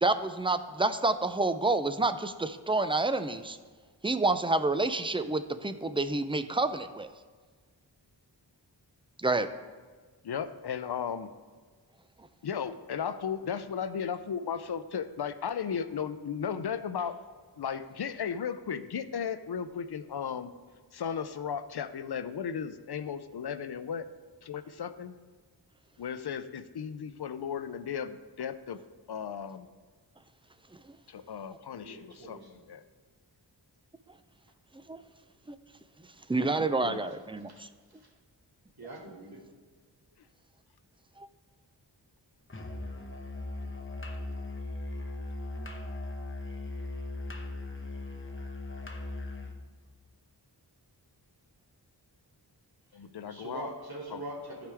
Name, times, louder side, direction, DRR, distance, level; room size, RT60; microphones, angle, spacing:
voice 1, 0.0-3.6 4.0-7.1 9.2-9.5 34.9-35.0 35.5-35.6 36.3-37.7 41.2-41.3, right 2 dB, 15° right, 10 dB, 0.4 m, -28 dB
voice 2, 10.2-11.3 12.4-17.2 17.6-20.5 20.9-24.1 24.4-25.1 26.0-28.8 29.1-29.7 31.1-32.8 36.4-37.1 52.9-53.7 54.1-54.2, left 7 dB, 65° left, 12 dB, 0.6 m, -35 dB
voice 3, 31.8-32.6 36.1-36.2 37.5-37.6 37.9-38.1 38.8-39.4 53.2-54.7, right 1 dB, 55° right, -4 dB, 2.5 m, -43 dB
Musical instrument, 42.5-49.6, left 2 dB, 30° left, 1.0 m, -38 dB
15.0 x 5.0 x 3.4 m, 1.5 s
wide cardioid pair, 80°, 43 cm